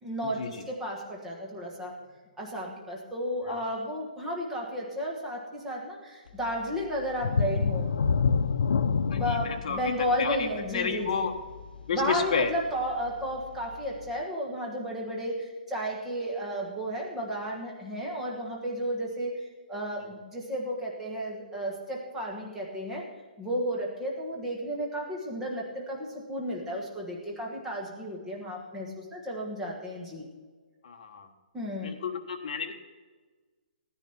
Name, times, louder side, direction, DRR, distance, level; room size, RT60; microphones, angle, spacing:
voice 1, 0.0-2.0 2.4-7.9 9.1-11.2 11.9-23.1 23.4-30.3 31.5-32.0, equal, 5° right, -2 dB, 1.3 m, -33 dB
sound 1, 7.2-12.7 13.1-13.2 13.7-13.8, left 5 dB, 75° left, 0.6 m, -28 dB
voice 2, 9.1-9.8 10.2-11.3 11.9-12.5 30.8-31.3 31.8-32.7, left 6 dB, 40° left, 4 dB, 1.3 m, -31 dB
16.0 x 9.9 x 4.4 m, 1.4 s
hypercardioid pair, 175°, 5 cm